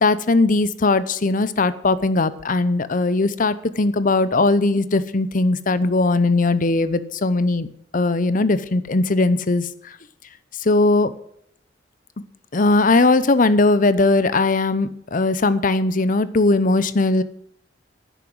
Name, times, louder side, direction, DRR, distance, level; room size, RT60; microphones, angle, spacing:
voice 1, 0.0-7.7 7.9-9.6 10.6-11.1 12.5-17.2, left 2 dB, 45° left, 15 dB, 0.8 m, -19 dB
11.0 x 9.2 x 7.7 m, 0.69 s
head